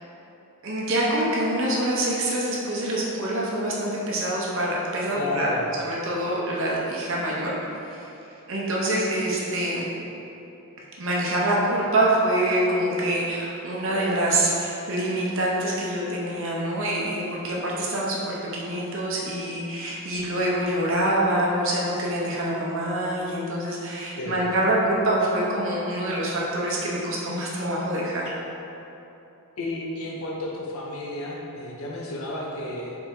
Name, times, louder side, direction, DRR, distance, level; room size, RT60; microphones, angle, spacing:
voice 1, 0.6-7.5 7.9-8.1 8.5-9.9 11.0-28.3, right 1 dB, 60° right, -4 dB, 0.8 m, -25 dB
voice 2, 5.1-5.7 24.2-24.4 29.6-33.0, left 2 dB, 65° left, -2 dB, 0.6 m, -32 dB
4.5 x 3.5 x 3.2 m, 2.9 s
head